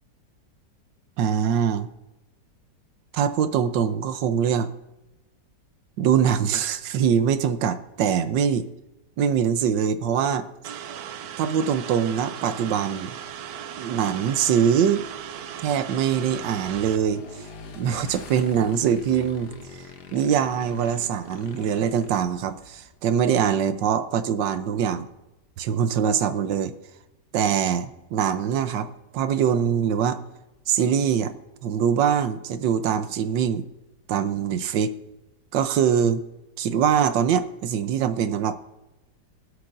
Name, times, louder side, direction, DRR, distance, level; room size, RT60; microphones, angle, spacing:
voice 1, 1.2-1.9 3.1-4.7 6.0-8.7 9.2-10.8 11.4-13.1 13.8-15.1 15.6-17.2 17.8-19.5 19.8-19.9 20.1-25.1 25.6-26.7 27.3-30.2 30.7-31.3 31.6-33.7 34.1-35.0 35.5-36.2 36.6-38.6, right 8 dB, 85° right, 10 dB, 1.4 m, -23 dB
sound 1, 10.6-17.0, right 9 dB, 70° right, 1.1 m, -37 dB
Motorcycle / Engine, 13.3-23.0, left 4 dB, 70° left, 1.6 m, -45 dB
24.0 x 8.1 x 2.6 m, 0.96 s
omnidirectional pair, 1.9 m